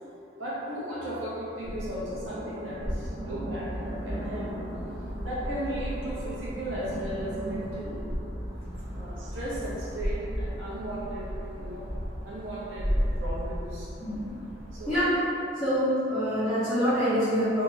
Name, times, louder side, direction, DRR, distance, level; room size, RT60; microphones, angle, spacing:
voice 1, 0.4-4.5 5.2-8.0 8.9-11.9 12.2-13.9 14.7-15.1, right 1 dB, 90° right, -6 dB, 0.7 m, -36 dB
sound 1, 1.6-15.0, equal, 35° right, 1.2 m, -34 dB
voice 2, 14.0-14.4 14.9-15.2 15.6-17.6, equal, ahead, -19 dB, 1.0 m, -25 dB
2.8 x 2.6 x 3.9 m, 2.6 s
head